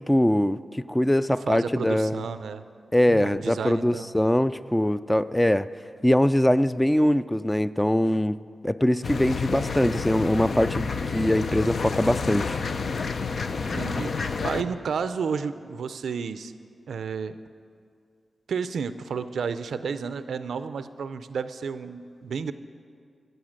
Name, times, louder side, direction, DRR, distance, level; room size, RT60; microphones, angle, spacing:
voice 1, 0.0-2.2 2.9-5.7 6.0-8.4 8.6-12.6, left 1 dB, 10° left, 14 dB, 0.3 m, -22 dB
voice 2, 1.5-2.6 3.1-4.1 13.7-16.5 16.9-17.4 18.5-22.5, right 6 dB, 90° right, 12 dB, 0.4 m, -31 dB
sound 1, 9.0-14.6, left 4 dB, 65° left, 0.5 m, -29 dB
16.0 x 7.9 x 6.4 m, 2.3 s
cardioid pair, 65°, 0 cm